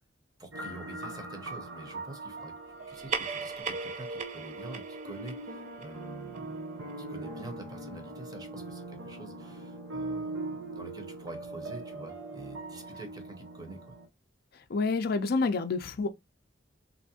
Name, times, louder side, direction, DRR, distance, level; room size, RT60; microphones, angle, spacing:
voice 1, 0.4-2.5 2.9-6.6 7.1-13.9, right 2 dB, 20° right, 0.8 m, -46 dB
sound 1, 0.5-14.1, right 2 dB, 80° right, 0.7 m, -41 dB
sound 2, 2.8-7.7, right 5 dB, 35° right, 0.4 m, -40 dB
voice 2, 14.7-16.1, left 3 dB, 55° left, 0.4 m, -28 dB
3.2 x 2.6 x 2.7 m
head